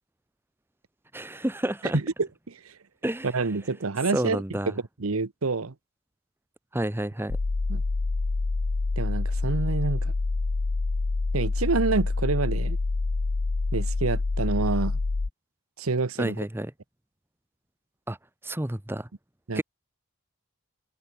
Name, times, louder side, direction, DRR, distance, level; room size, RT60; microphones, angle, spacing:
voice 1, 1.1-2.0 3.0-3.3 4.1-4.7 6.7-7.4 16.2-16.7 18.1-18.2 18.4-19.1 19.5-19.6, right 1 dB, 10° right, 0.9 m, -29 dB
voice 2, 1.9-2.7 3.2-5.7 7.7-7.8 9.0-10.1 11.3-12.8 13.7-15.0 15.8-16.4 19.5-19.6, right 3 dB, 85° right, 1.0 m, -28 dB
sound 1, 7.3-15.3, left 3 dB, 75° left, 0.8 m, -27 dB
head